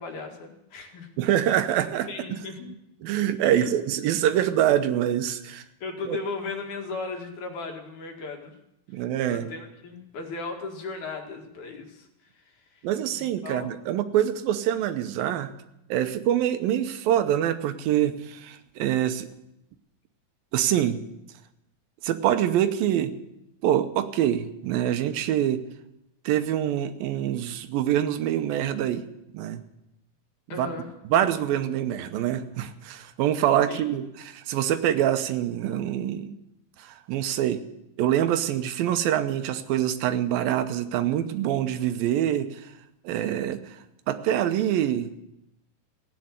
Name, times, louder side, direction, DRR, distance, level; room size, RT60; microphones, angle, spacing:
voice 1, 0.0-1.1 2.1-2.8 3.5-3.8 5.8-8.5 9.3-13.7 30.5-30.9 33.7-33.8, left 4 dB, 60° left, 3 dB, 3.2 m, -37 dB
voice 2, 1.2-2.4 3.0-5.6 6.1-6.2 8.9-9.5 12.8-15.5 15.9-19.3 20.5-21.0 22.0-23.1 23.6-25.6 26.3-29.0 29.3-29.6 30.5-30.7 31.1-36.3 36.8-37.6 38.0-42.7 43.0-43.8 44.1-45.1, right 11 dB, 85° right, 10 dB, 2.7 m, -25 dB
17.0 x 9.9 x 8.1 m, 0.86 s
omnidirectional pair, 4.2 m